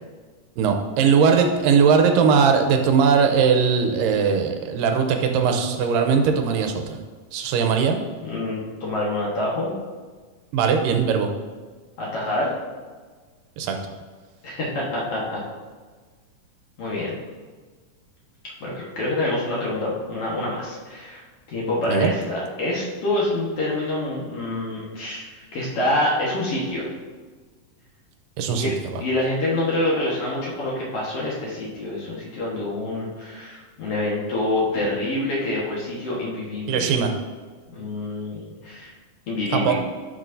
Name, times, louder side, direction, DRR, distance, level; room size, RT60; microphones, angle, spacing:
voice 1, 0.6-7.0 7.3-8.0 10.5-11.3 13.6-13.8 21.9-22.1 28.4-28.7 36.7-37.1 39.5-39.7, right 6 dB, 85° right, 4 dB, 2.4 m, -19 dB
voice 2, 8.2-9.7 12.0-12.5 14.4-15.4 16.8-17.1 18.6-21.2 21.5-26.9 28.5-28.7 29.0-36.9 37.7-38.9 39.3-39.7, left 1 dB, 55° left, -5 dB, 2.1 m, -26 dB
12.0 x 6.2 x 2.7 m, 1.4 s
omnidirectional pair, 3.9 m